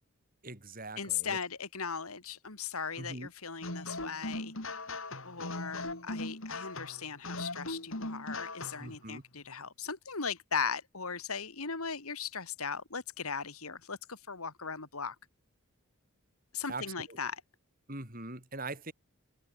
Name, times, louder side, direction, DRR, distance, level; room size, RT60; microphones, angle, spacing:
voice 1, 0.4-1.4 3.0-3.3 8.8-9.2 16.7-17.2 17.9-18.9, right 2 dB, 40° right, 6.7 m, -42 dB
voice 2, 1.0-4.5 5.2-15.2 16.5-17.4, left 6 dB, 80° left, 2.7 m, -38 dB
sound 1, 3.6-8.9, left 2 dB, 65° left, 7.5 m, -39 dB
head